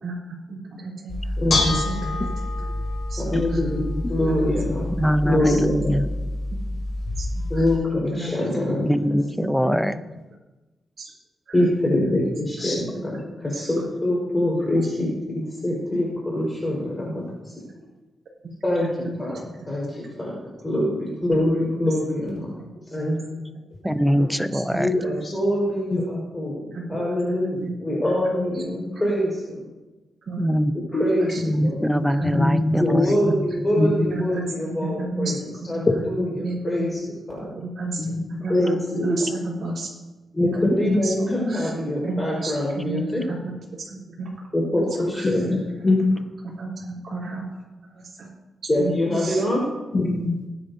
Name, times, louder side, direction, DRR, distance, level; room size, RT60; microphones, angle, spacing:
voice 1, 0.0-2.3 3.1-3.6 4.2-4.3 5.4-5.5 7.2-7.6 8.1-8.3 11.0-11.1 11.5-11.6 22.6-22.7 24.2-24.8 26.7-27.2 27.6-27.7 28.5-28.8 30.3-30.5 31.3-31.4 32.2-32.4 32.7-33.0 33.3-33.4 34.1-34.7 35.0-36.0 36.4-36.9 37.5-39.3 39.6-39.9 41.0-41.7 42.0-43.6 43.9-44.3 45.1-45.4 45.8-45.9 46.6-47.4 48.8-49.4, right 3 dB, 60° right, -6 dB, 3.4 m, -33 dB
Bell / Dishes pots and pans, 1.1-7.8, left 2 dB, 55° left, 3.7 m, -27 dB
voice 2, 1.4-1.8 3.2-5.0 5.2-5.9 7.5-8.9 9.3-9.4 11.5-17.1 17.4-17.6 18.6-18.9 19.2-19.4 19.7-20.3 20.6-22.6 22.9-23.2 24.7-29.6 31.0-31.9 32.8-35.4 35.7-37.0 37.3-37.5 38.5-38.8 40.3-43.2 44.5-45.6 48.7-49.6, left 1 dB, 20° left, -5 dB, 4.7 m, -24 dB
voice 3, 4.9-6.1 8.8-10.0 23.8-24.9 30.4-30.7 31.4-33.7, equal, ahead, 10 dB, 0.7 m, -23 dB
voice 4, 31.4-32.8 33.8-34.2 35.9-36.0 38.0-38.2 38.9-39.7 40.4-41.0 45.2-45.6 45.8-46.2 49.9-50.4, left 2 dB, 40° left, -2 dB, 1.7 m, -24 dB
20.0 x 10.0 x 2.8 m, 1.1 s
cardioid pair, 105°, 0 cm